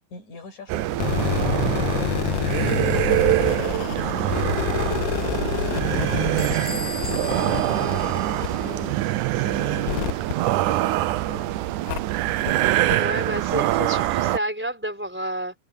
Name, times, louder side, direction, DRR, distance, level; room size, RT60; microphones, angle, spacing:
voice 1, 0.0-2.4 3.2-9.0 9.3-10.3 11.1-11.6, left 3 dB, 50° left, 7.9 m, -41 dB
sound 1, 0.7-14.4, right 15 dB, 80° right, 1.9 m, -24 dB
sound 2, 0.9-11.3 11.9-12.0 12.5-12.6 12.9-13.0, left 17 dB, 85° left, 1.9 m, -29 dB
Bell / Door, 6.4-8.9, left 1 dB, 15° left, 3.9 m, -37 dB
voice 2, 12.9-15.5, right 1 dB, 5° right, 3.5 m, -29 dB
omnidirectional pair, 4.3 m